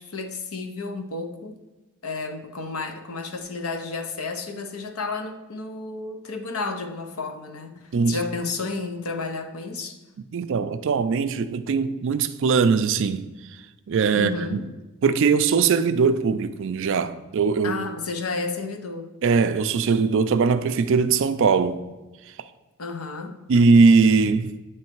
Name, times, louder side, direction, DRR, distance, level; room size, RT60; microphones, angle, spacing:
voice 1, 0.0-1.6 2.0-10.0 14.1-14.7 17.6-19.1 22.8-23.3, left 3 dB, 70° left, 0.7 m, -32 dB
voice 2, 10.3-13.2 13.9-14.6 15.0-17.8 19.2-21.8 23.5-24.6, right 5 dB, 55° right, 0.4 m, -20 dB
8.7 x 3.2 x 4.5 m
head